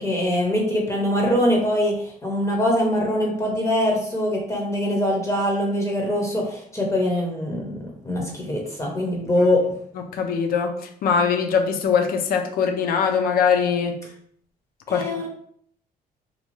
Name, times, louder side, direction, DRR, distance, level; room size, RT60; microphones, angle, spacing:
voice 1, 0.0-9.8 14.9-15.3, left 1 dB, 20° left, -1 dB, 0.6 m, -23 dB
voice 2, 10.1-10.7 11.0-14.0 14.9-15.0, left 6 dB, 70° left, 6 dB, 0.4 m, -21 dB
2.6 x 2.2 x 3.0 m, 0.64 s
cardioid pair, 120°, 16 cm